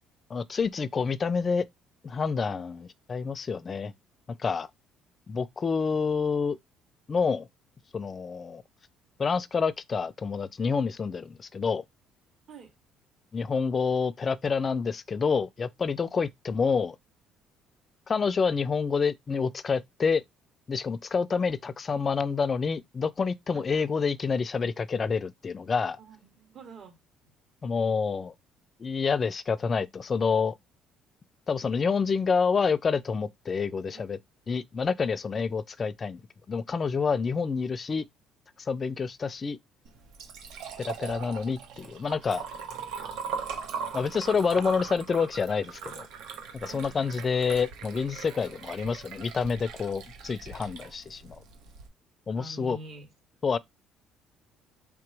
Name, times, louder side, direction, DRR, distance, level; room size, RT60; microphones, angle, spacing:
voice 1, 0.3-1.6 2.0-3.9 4.3-4.7 5.3-6.6 7.1-7.5 7.9-8.6 9.2-11.8 13.3-17.0 18.1-20.2 20.7-26.0 27.6-28.3 28.8-30.5 31.5-34.2 34.5-36.2 36.5-38.1 38.6-39.6 40.8-42.5 43.9-46.1 46.5-51.4 52.3-52.8 53.4-53.6, left 5 dB, 30° left, 0.4 m, -28 dB
voice 2, 26.0-27.0 33.9-34.1 46.6-47.3 52.3-53.1, right 3 dB, 50° right, 1.6 m, -47 dB
Liquid, 39.8-51.9, right 6 dB, 80° right, 1.1 m, -40 dB
3.4 x 3.0 x 4.7 m
cardioid pair, 115°, 0 cm